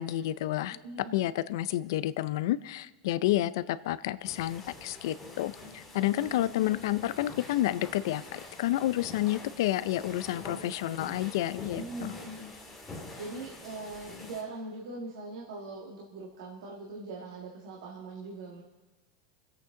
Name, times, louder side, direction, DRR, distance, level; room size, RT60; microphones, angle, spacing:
voice 1, 0.0-0.8 1.1-12.1, left 14 dB, 75° left, 17 dB, 0.4 m, -30 dB
voice 2, 0.7-1.1 5.9-6.7 11.8-12.5 12.9-18.6, right 2 dB, 85° right, -2 dB, 1.9 m, -42 dB
sound 1, 4.2-14.4, left 2 dB, 10° left, 2.3 m, -46 dB
25.0 x 8.3 x 3.8 m, 1.2 s
supercardioid pair, 155°, 2 cm